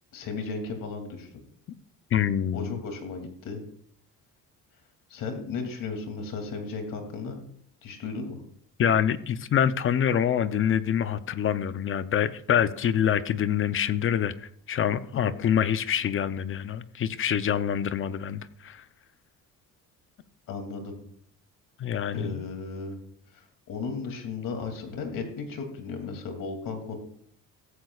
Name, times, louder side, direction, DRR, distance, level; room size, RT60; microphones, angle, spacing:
voice 1, 0.1-1.3 2.5-3.6 5.1-7.4 7.8-8.4 15.1-15.4 20.5-21.0 22.1-23.0 23.3-27.0, left 4 dB, 65° left, 4 dB, 2.7 m, -35 dB
voice 2, 2.1-2.8 8.8-18.8 21.8-22.5, left 9 dB, 35° left, 13 dB, 0.6 m, -26 dB
16.0 x 14.5 x 2.4 m, 0.65 s
cardioid pair, 180°, 35 cm